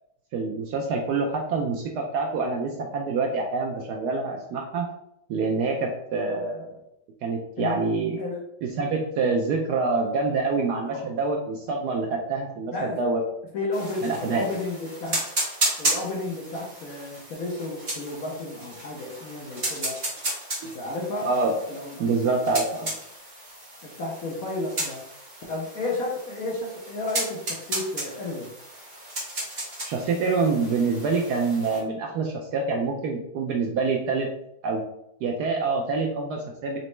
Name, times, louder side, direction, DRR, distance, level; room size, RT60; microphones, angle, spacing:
voice 1, 0.3-4.9 5.3-6.7 7.2-8.2 8.6-13.2 14.0-14.5 20.6-20.7 21.2-21.5 22.0-23.0 29.8-34.3 34.6-34.8 35.2-36.8, right 4 dB, 75° right, 1 dB, 0.9 m, -26 dB
voice 2, 10.8-11.2 12.7-13.1 13.5-15.2 15.8-20.0 20.6-21.3 21.7-22.0 22.8-22.9 23.8-25.0 25.5-28.5, left 2 dB, 65° left, -2 dB, 0.9 m, -32 dB
sound 1, 13.7-31.8, right 1 dB, 35° right, 1.6 m, -34 dB
4.1 x 3.0 x 3.1 m, 0.80 s
omnidirectional pair, 2.1 m